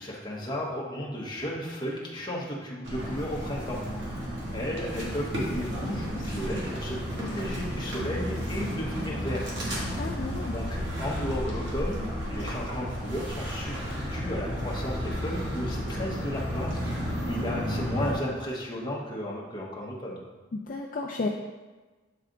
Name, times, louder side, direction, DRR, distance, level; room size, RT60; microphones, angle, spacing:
voice 1, 0.0-3.8 4.1-9.7 9.9-20.2, equal, 25° left, -3 dB, 1.0 m, -34 dB
sound 1, 2.8-18.1, equal, 65° right, 1.5 m, -32 dB
voice 2, 10.0-10.5 20.5-21.3, left 3 dB, 45° left, 0 dB, 0.4 m, -32 dB
7.7 x 3.3 x 3.8 m, 1.3 s
head